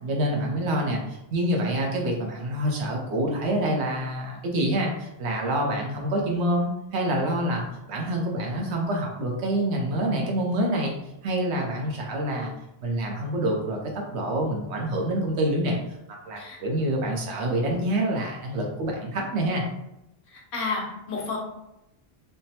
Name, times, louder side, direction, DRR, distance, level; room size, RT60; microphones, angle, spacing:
voice 1, 0.0-10.9 11.2-12.5 12.8-13.8 14.1-15.8 16.3-19.6, right 1 dB, 85° right, 0 dB, 1.0 m, -26 dB
voice 2, 20.3-21.4, left 4 dB, 80° left, -2 dB, 1.0 m, -31 dB
3.3 x 2.0 x 2.7 m, 0.89 s
omnidirectional pair, 1.1 m